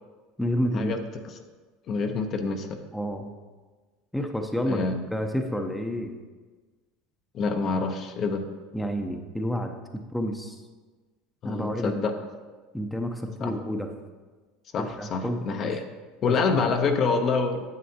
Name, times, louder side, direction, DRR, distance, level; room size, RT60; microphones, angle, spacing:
voice 1, 0.4-0.9 2.9-3.3 4.1-4.8 5.1-6.1 8.7-10.6 11.4-11.9 12.7-13.9 14.8-15.8 16.3-16.7, equal, 5° left, 4 dB, 0.7 m, -30 dB
voice 2, 1.9-2.8 4.7-5.0 7.3-8.5 11.4-12.1 13.4-13.5 14.7-15.8 16.2-17.6, left 4 dB, 45° left, 5 dB, 0.8 m, -26 dB
9.5 x 7.5 x 2.8 m, 1.3 s
supercardioid pair, 105°, 0 cm